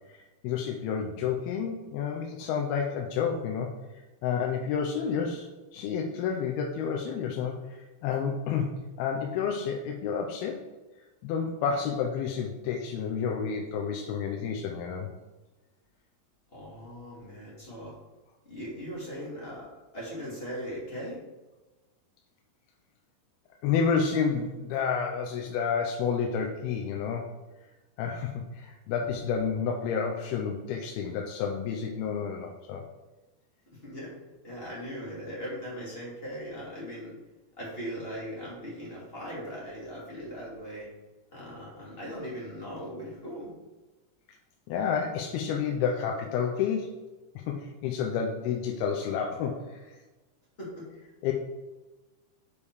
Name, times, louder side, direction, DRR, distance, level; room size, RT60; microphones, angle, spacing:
voice 1, 0.1-3.7 4.2-10.6 11.2-15.1 23.6-27.3 28.0-32.8 44.7-47.0 47.4-50.0 51.2-51.3, left 6 dB, 80° left, 1 dB, 2.5 m, -30 dB
voice 2, 16.5-17.9 18.5-19.7 19.9-21.2 33.8-34.1 34.4-37.2 37.6-40.9 41.3-43.5 50.6-50.8, equal, 20° left, -6 dB, 1.9 m, -39 dB
7.0 x 5.2 x 4.7 m, 1.1 s
omnidirectional pair, 4.7 m